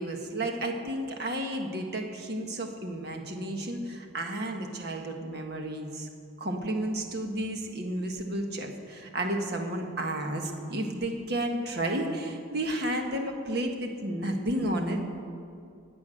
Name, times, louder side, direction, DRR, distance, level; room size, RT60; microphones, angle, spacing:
voice 1, 0.0-6.1 6.4-15.0, right 1 dB, 50° right, 3 dB, 1.4 m, -32 dB
16.5 x 8.5 x 6.4 m, 2.4 s
head